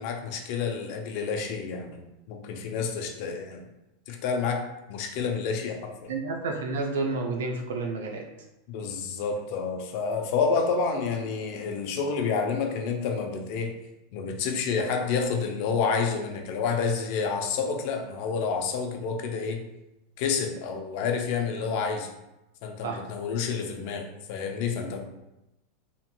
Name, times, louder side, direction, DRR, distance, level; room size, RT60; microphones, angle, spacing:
voice 1, 0.0-3.6 4.1-6.1 8.7-13.7 14.1-19.6 20.2-22.1 22.6-25.0, left 5 dB, 60° left, 3 dB, 0.5 m, -29 dB
voice 2, 6.1-8.3 22.8-23.0, right 3 dB, 85° right, 3 dB, 0.5 m, -30 dB
2.9 x 2.8 x 2.2 m, 0.94 s
supercardioid pair, 130°, 0 cm